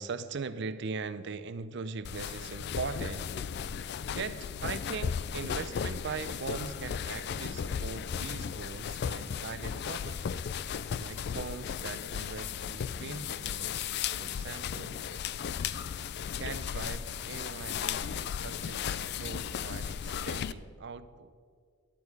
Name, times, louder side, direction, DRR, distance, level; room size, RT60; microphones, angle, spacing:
voice 1, 0.0-3.4 4.1-10.3 11.0-15.0 16.4-21.3, right 4 dB, 60° right, 13 dB, 0.5 m, -40 dB
sound 1, 2.0-20.5, left 7 dB, 55° left, 0.3 m, -35 dB
11.5 x 8.5 x 4.7 m, 2.1 s
head